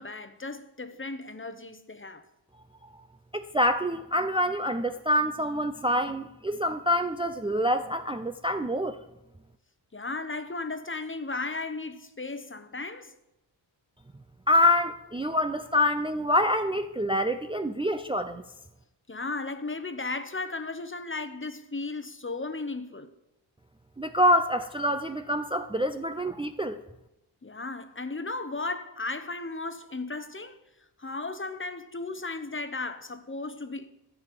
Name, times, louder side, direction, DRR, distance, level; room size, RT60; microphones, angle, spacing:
voice 1, 0.0-2.2 9.9-13.1 19.1-23.1 27.4-30.6 31.0-33.9, left 3 dB, 25° left, 1.0 m, -35 dB
voice 2, 3.3-9.0 14.5-18.4 24.0-26.8, left 1 dB, 10° right, 0.6 m, -26 dB
11.5 x 4.9 x 8.5 m
cardioid pair, 45°, 48 cm